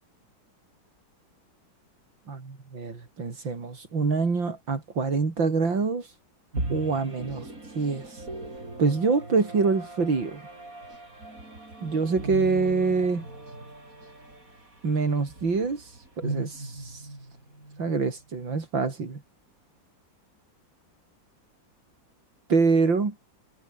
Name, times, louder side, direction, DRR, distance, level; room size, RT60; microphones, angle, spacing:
voice 1, 2.3-6.1 6.7-8.3 8.8-10.4 11.8-13.3 14.8-17.1 17.8-19.2 22.5-23.1, right 4 dB, 80° right, 4.4 m, -26 dB
sound 1, 6.5-18.2, right 2 dB, 45° right, 7.2 m, -38 dB
omnidirectional pair, 2.0 m